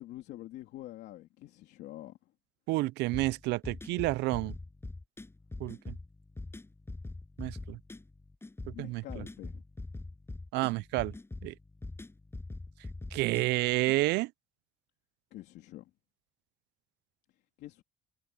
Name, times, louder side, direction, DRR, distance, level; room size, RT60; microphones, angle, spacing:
voice 1, 0.0-2.3 8.7-9.6 15.3-15.9 17.6-17.8, left 15 dB, 80° left, 3.2 m, -46 dB
voice 2, 2.7-4.6 5.6-6.0 7.4-7.8 8.7-9.2 10.5-11.1 11.4-11.5 13.1-14.3, right 20 dB, 85° right, 0.5 m, -30 dB
sound 1, 3.1-14.0, left 2 dB, 15° left, 6.7 m, -44 dB
cardioid pair, 110°, 17 cm